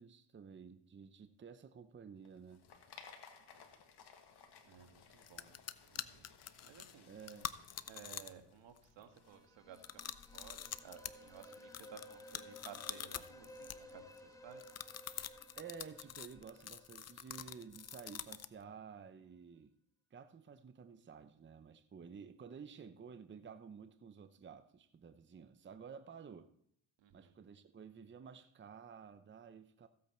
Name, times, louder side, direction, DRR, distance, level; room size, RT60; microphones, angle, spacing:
voice 1, 0.0-2.6 7.1-7.5 15.6-19.7 20.1-26.5 27.1-29.9, right 6 dB, 25° right, 0.7 m, -53 dB
sound 1, 2.2-9.4, left 6 dB, 65° left, 1.7 m, -60 dB
voice 2, 4.6-7.1 7.9-14.7 27.0-27.3, right 8 dB, 80° right, 1.6 m, -57 dB
sound 2, 4.9-5.0 5.2-8.5 8.8-9.2 9.7-14.2 14.6-18.6, left 9 dB, 35° left, 0.6 m, -46 dB
sound 3, 9.2-18.0, left 1 dB, 5° left, 1.2 m, -57 dB
15.0 x 8.5 x 4.4 m
cardioid pair, 95°, 43 cm